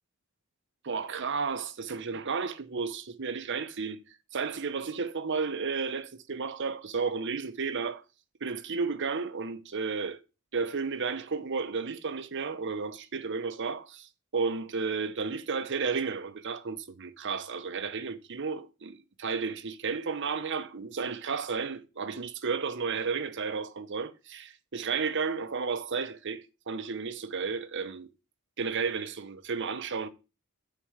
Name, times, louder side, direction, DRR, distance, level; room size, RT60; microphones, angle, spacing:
voice 1, 0.8-8.0 8.4-10.2 10.5-28.1 28.6-30.1, right 5 dB, 55° right, 0.8 m, -33 dB
7.0 x 4.6 x 6.3 m
head